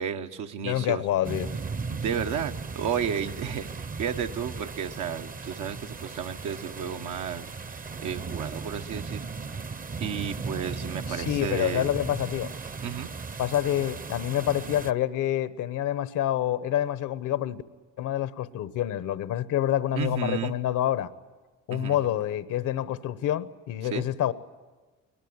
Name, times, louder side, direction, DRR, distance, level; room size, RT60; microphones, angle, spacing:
voice 1, 0.0-1.0 1.9-3.7 4.0-9.2 10.0-12.0 12.8-13.1 19.9-20.5 21.7-22.1 23.9-24.1, right 8 dB, 85° right, 1.2 m, -32 dB
voice 2, 0.6-1.5 11.1-12.5 13.4-17.6 18.0-21.1 21.7-24.3, left 12 dB, 85° left, 1.0 m, -27 dB
sound 1, 1.2-14.9, right 4 dB, 30° right, 0.7 m, -37 dB
22.5 x 20.5 x 9.5 m
cardioid pair, 90°, 30 cm